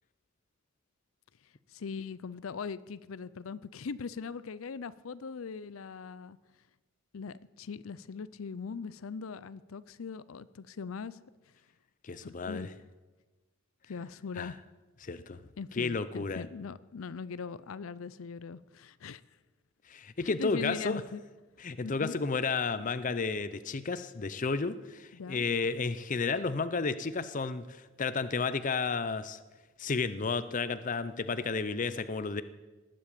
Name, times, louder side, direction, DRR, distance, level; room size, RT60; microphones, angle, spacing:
voice 1, 1.7-6.4 7.1-11.2 12.2-12.7 13.9-14.6 15.6-19.2 20.2-21.2 21.8-22.2 25.1-25.5, left 5 dB, 85° left, 17 dB, 0.5 m, -40 dB
voice 2, 12.0-12.7 14.4-14.5 15.0-15.4 15.8-16.4 19.9-21.0 21.6-29.4 29.8-32.4, left 4 dB, 40° left, 13 dB, 0.6 m, -32 dB
19.0 x 7.7 x 8.5 m, 1.2 s
head